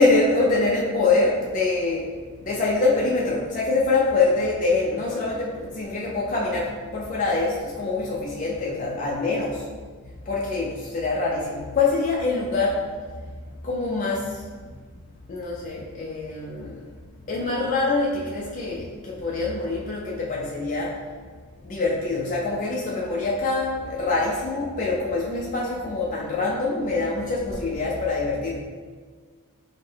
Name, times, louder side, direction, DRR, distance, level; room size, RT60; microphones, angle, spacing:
voice 1, 0.0-2.1 2.4-9.6 10.2-12.8 13.6-14.4 15.3-16.8 17.3-21.0 21.6-28.6, left 3 dB, 40° left, -4 dB, 0.5 m, -24 dB
5.6 x 2.1 x 3.3 m, 1.5 s
head